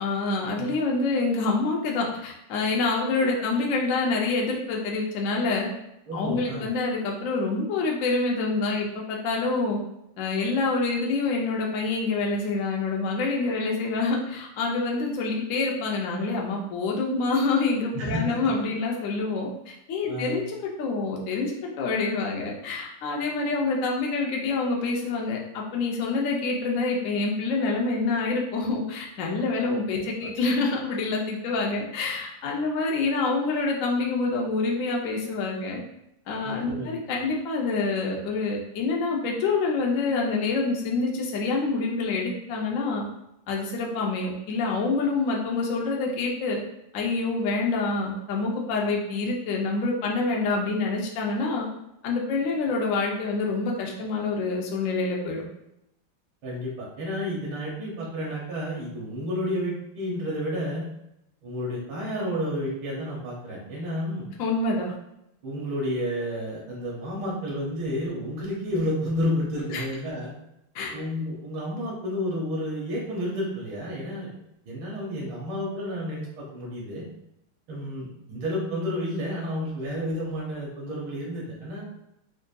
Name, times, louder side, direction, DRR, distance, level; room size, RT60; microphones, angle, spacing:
voice 1, 0.0-5.7 6.1-9.8 10.2-35.8 36.3-43.0 43.5-46.6 46.9-51.7 52.0-55.4 64.4-64.9 69.7-69.8 70.7-70.9, left 3 dB, 85° left, -1 dB, 0.7 m, -26 dB
voice 2, 6.1-6.7 17.9-18.4 20.1-20.4 36.4-37.3 56.4-60.8 61.4-64.3 65.4-70.3 70.9-74.3 74.7-77.0 77.7-81.8, equal, 75° right, -4 dB, 1.8 m, -31 dB
4.9 x 2.6 x 2.2 m, 0.82 s
omnidirectional pair, 2.3 m